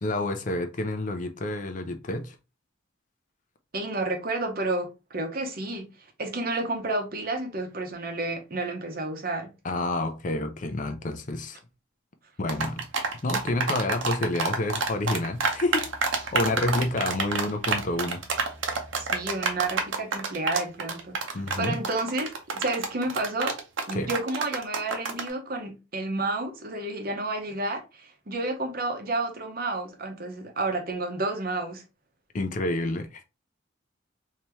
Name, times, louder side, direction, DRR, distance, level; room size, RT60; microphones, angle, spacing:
voice 1, 0.0-2.4 9.6-11.6 12.4-12.8 13.2-18.2 21.3-21.8 23.9-24.1 32.3-33.2, left 2 dB, 40° left, 0.5 m, -29 dB
voice 2, 3.7-5.9 6.2-9.5 19.0-23.6 23.9-31.8, right 2 dB, 50° right, 0.8 m, -30 dB
sound 1, 12.5-25.3, right 4 dB, 75° right, 0.8 m, -28 dB
3.4 x 2.8 x 3.0 m
head